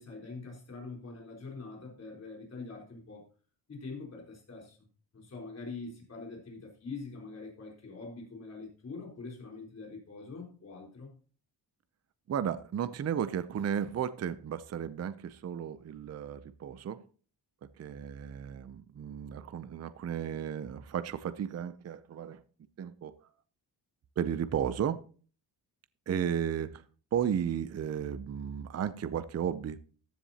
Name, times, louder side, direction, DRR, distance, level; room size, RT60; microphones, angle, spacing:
voice 1, 0.0-3.2 3.7-4.8 5.1-11.1, left 3 dB, 35° left, 3.9 m, -44 dB
voice 2, 12.3-17.0 17.6-22.4 22.8-23.1 24.2-25.0 26.1-26.8 27.1-29.8, right 8 dB, 35° right, 0.5 m, -34 dB
14.5 x 10.0 x 2.8 m
wide cardioid pair, 150°, 43 cm